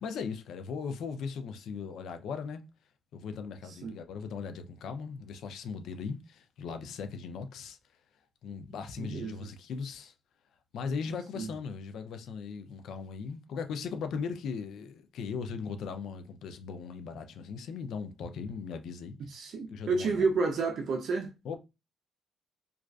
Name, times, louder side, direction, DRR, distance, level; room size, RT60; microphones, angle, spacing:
voice 1, 0.0-2.6 3.1-7.8 8.4-10.1 10.7-19.1 19.7-20.2 21.4-21.6, left 5 dB, 75° left, 0.4 m, -38 dB
voice 2, 9.0-9.3 11.3-11.5 19.3-21.3, right 4 dB, 65° right, 0.5 m, -30 dB
2.3 x 2.3 x 2.2 m
cardioid pair, 90°, 0 cm